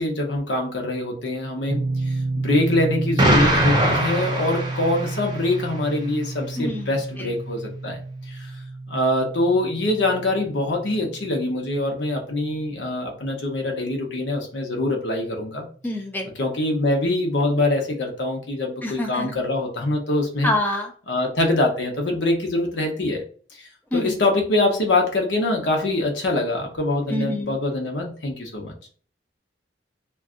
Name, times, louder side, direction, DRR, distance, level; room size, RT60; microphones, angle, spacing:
voice 1, 0.0-8.0 8.3-8.5 8.9-15.7 16.3-20.5 21.1-23.2 23.6-28.7, left 2 dB, 80° left, 1 dB, 0.8 m, -24 dB
sound 1, 1.7-14.6, right 2 dB, 85° right, 0.4 m, -32 dB
Explosion, 3.2-5.4, right 1 dB, 25° right, 0.7 m, -21 dB
voice 2, 6.6-6.9 15.8-16.3 18.8-19.4 20.4-20.9 23.9-24.1 27.1-27.6, left 1 dB, 10° left, 2 dB, 0.4 m, -26 dB
2.5 x 2.3 x 3.6 m, 0.44 s
head